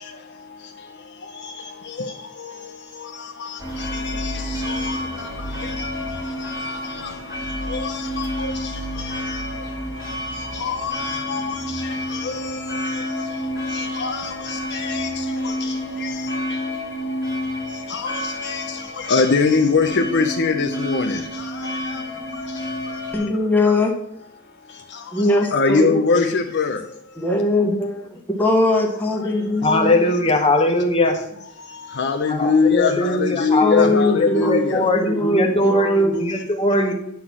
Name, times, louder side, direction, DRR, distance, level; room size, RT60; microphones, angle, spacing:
sound 1, 3.6-23.2, left 1 dB, 15° right, 1.8 m, -29 dB
voice 1, 7.8-8.5 10.6-11.5 12.2-12.3 14.0-14.3 14.7-15.1 16.0-16.1 17.9-18.1 18.4-18.6 19.1-21.2 25.5-26.8 32.0-34.8, left 4 dB, 50° left, 0.7 m, -21 dB
voice 2, 23.1-23.9 25.1-26.2 27.2-27.9 28.3-30.0 33.6-36.3, left 1 dB, 10° left, 1.4 m, -20 dB
voice 3, 29.6-31.2 32.3-36.9, left 2 dB, 25° left, 1.3 m, -20 dB
9.8 x 4.0 x 7.5 m
head